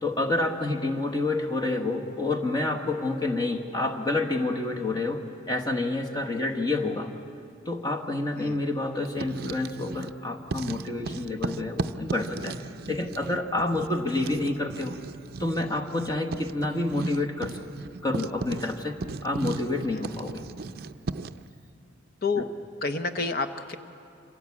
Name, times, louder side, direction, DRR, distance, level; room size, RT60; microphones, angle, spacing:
voice 1, 0.0-7.1 7.6-12.6 12.8-14.9 15.4-17.6 18.0-19.0 19.2-20.4, left 2 dB, 20° left, 2 dB, 1.3 m, -28 dB
Writing, 9.0-10.2 10.5-21.5, right 3 dB, 50° right, 0.5 m, -36 dB
voice 2, 22.2-22.5 22.8-23.8, left 4 dB, 50° left, 9 dB, 0.9 m, -29 dB
26.0 x 17.0 x 8.4 m, 2.6 s
head